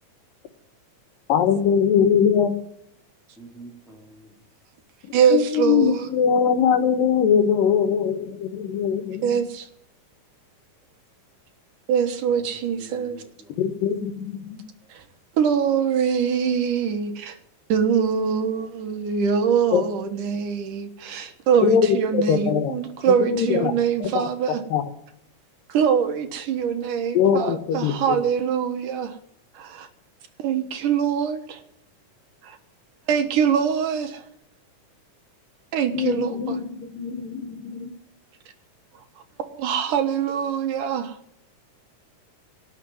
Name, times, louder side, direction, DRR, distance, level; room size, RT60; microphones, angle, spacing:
voice 1, 1.3-2.5 5.3-9.3 13.6-14.6 19.7-19.8 21.6-21.9 22.1-22.8 23.2-23.7 24.0-24.8 27.1-28.2 35.9-37.9, left 7 dB, 90° left, 3.0 m, -22 dB
voice 2, 3.4-4.3 12.3-13.5, right 2 dB, ahead, 2.3 m, -45 dB
voice 3, 5.1-6.1 9.2-9.7 11.9-13.2 14.9-15.0 15.4-17.4 17.7-24.6 25.7-29.2 29.5-29.9 30.4-31.6 32.4-32.6 33.1-34.2 35.7-36.6 39.4-41.2, right 7 dB, 75° right, 2.9 m, -23 dB
18.5 x 6.7 x 9.7 m
omnidirectional pair, 3.8 m